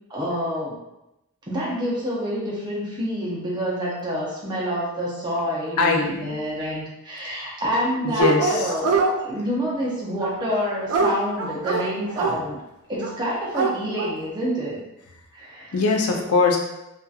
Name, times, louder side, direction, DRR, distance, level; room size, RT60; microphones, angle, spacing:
voice 1, 0.1-0.8 1.5-12.6 12.9-14.8 15.3-15.7, equal, 20° right, -6 dB, 0.6 m, -27 dB
voice 2, 5.8-6.3 8.0-8.7 12.2-12.4 15.7-16.6, left 4 dB, 90° left, 1 dB, 0.5 m, -21 dB
Dog, 8.2-9.1 10.2-12.3 13.0-13.1 13.4-14.1, right 4 dB, 90° right, 0.3 m, -24 dB
2.7 x 2.4 x 2.3 m, 0.90 s
head